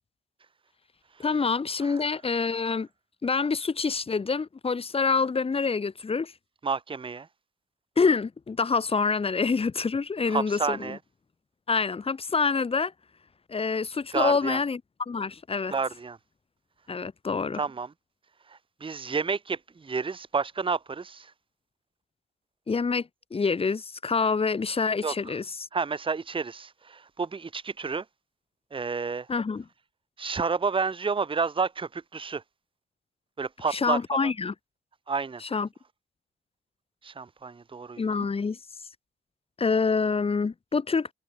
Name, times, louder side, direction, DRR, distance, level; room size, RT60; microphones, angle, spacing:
voice 1, 1.2-2.9 3.2-6.3 8.0-11.0 11.7-12.9 13.5-14.8 15.1-15.7 16.9-17.6 22.7-25.7 29.3-29.6 33.7-34.5 35.4-35.7 38.0-38.6 39.6-41.1, left 4 dB, 25° left, 1.0 m, -26 dB
voice 2, 6.6-7.3 10.3-11.0 14.1-14.6 15.7-16.2 17.5-17.9 18.5-21.3 25.0-25.1 25.7-28.0 28.7-29.3 30.2-32.4 33.4-34.3 35.1-35.4 37.0-38.0, right 5 dB, 25° right, 1.0 m, -30 dB
cardioid pair, 90°, 21 cm